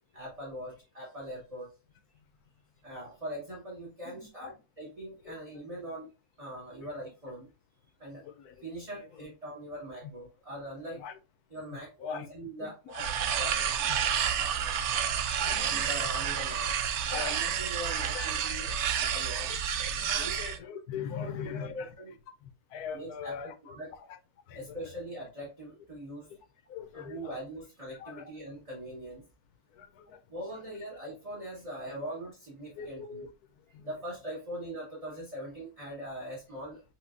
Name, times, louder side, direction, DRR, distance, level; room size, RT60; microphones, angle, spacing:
voice 1, 0.1-1.7 2.8-6.1 6.4-7.5 8.0-8.2 8.6-11.0 11.5-13.1 15.5-16.7 17.1-18.6 18.9-19.5 20.1-20.4 21.2-22.1 22.9-23.3 23.6-23.9 24.5-26.3 26.9-29.3 30.3-33.3 33.8-36.8, right 1 dB, 25° right, 1.3 m, -41 dB
voice 2, 4.0-4.5 5.2-5.3 5.8-5.9 6.8-6.9 8.2-8.7 9.1-9.3 10.9-11.2 11.7-12.3 12.6-12.9 13.4-14.0 15.4-16.1 17.1-17.6 18.1-18.3 18.7-18.8 19.4-19.5 19.7-21.9 22.4-23.8 24.5-25.0 26.3-26.4 26.7-27.4 28.0-28.3 29.8-30.2 32.0-32.1 32.8-33.3 33.7-33.9, left 7 dB, 80° left, 1.2 m, -42 dB
sound 1, 12.9-20.6, right 8 dB, 70° right, 0.7 m, -30 dB
7.8 x 2.7 x 2.5 m
omnidirectional pair, 1.6 m